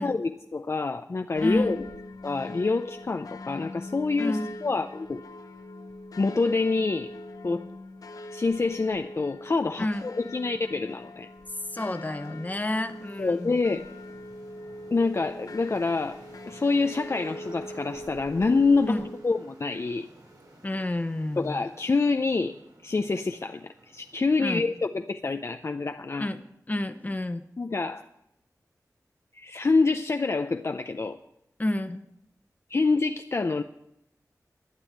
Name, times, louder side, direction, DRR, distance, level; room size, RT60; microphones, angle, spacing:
voice 1, 0.0-1.8 2.2-5.2 6.2-7.1 7.4-7.7 8.3-11.3 13.2-13.9 14.9-16.2 16.5-20.1 21.4-22.6 22.8-26.3 27.6-28.0 29.3-31.2 32.7-33.6, left 3 dB, 45° left, 7 dB, 0.5 m, -26 dB
sound 1, 1.3-19.2, left 1 dB, 70° left, 0.9 m, -42 dB
voice 2, 1.4-1.8 4.2-4.5 9.8-10.1 11.7-13.6 18.9-19.1 20.6-21.6 24.4-24.7 26.2-27.4 31.6-32.1, left 1 dB, 25° left, 9 dB, 1.0 m, -30 dB
sound 2, 10.6-25.1, right 1 dB, 85° right, 3.7 m, -54 dB
12.5 x 9.1 x 8.6 m, 0.82 s
wide cardioid pair, 90°, 6 cm